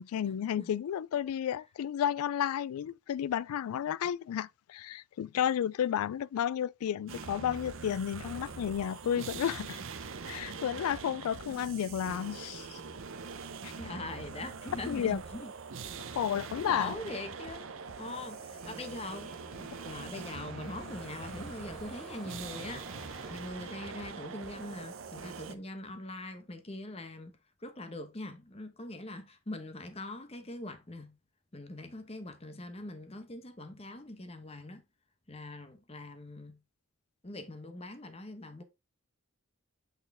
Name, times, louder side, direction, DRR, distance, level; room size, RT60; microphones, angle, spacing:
voice 1, 0.0-9.8 10.3-12.8 13.6-13.7 14.9-15.2 16.1-16.9, left 9 dB, 90° left, 0.3 m, -32 dB
sound 1, 7.1-25.5, right 5 dB, 65° right, 0.7 m, -43 dB
voice 2, 13.8-15.5 16.6-22.9 23.3-27.3 27.6-31.2 31.5-34.8 35.3-36.6 37.2-38.6, left 2 dB, 30° left, 1.0 m, -42 dB
sound 2, 14.5-23.3, right 1 dB, ahead, 2.2 m, -54 dB
8.1 x 4.2 x 3.5 m
head